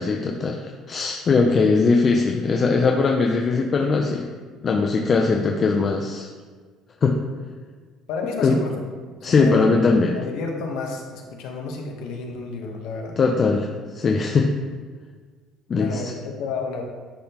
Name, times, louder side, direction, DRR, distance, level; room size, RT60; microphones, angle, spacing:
voice 1, 0.0-4.3 4.6-6.3 7.0-7.2 8.4-8.6 9.2-10.2 13.2-14.6 15.7-16.1, left 4 dB, 25° left, 2 dB, 0.4 m, -20 dB
voice 2, 8.1-8.8 9.4-13.2 15.7-16.8, left 4 dB, 70° left, 2 dB, 1.0 m, -31 dB
10.0 x 3.7 x 2.9 m, 1.6 s
cardioid pair, 170°, 0 cm